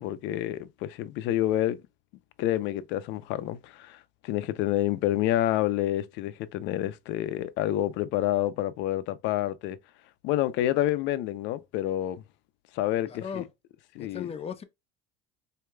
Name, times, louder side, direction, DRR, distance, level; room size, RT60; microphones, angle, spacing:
voice 1, 0.0-1.8 2.4-9.8 10.2-12.2 12.7-13.4 13.9-14.3, left 13 dB, 70° left, 0.6 m, -28 dB
voice 2, 13.1-13.5 14.0-14.6, left 7 dB, 30° left, 0.8 m, -36 dB
4.6 x 2.8 x 2.3 m
supercardioid pair, 105°, 19 cm